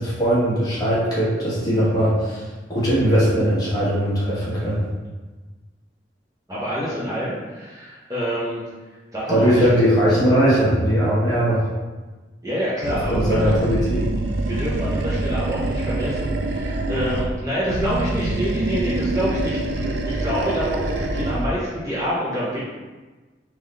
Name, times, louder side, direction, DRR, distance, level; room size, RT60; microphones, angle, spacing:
voice 1, 0.0-2.4 2.7-4.8 9.3-11.6 13.1-14.1, equal, 20° left, -9 dB, 1.4 m, -19 dB
voice 2, 6.5-8.6 9.1-9.7 12.4-13.5 14.5-22.6, equal, 20° right, -9 dB, 0.8 m, -27 dB
Animal, 12.8-17.4 17.7-21.6, right 2 dB, 70° right, 0.4 m, -25 dB
3.8 x 3.1 x 3.3 m, 1.3 s
head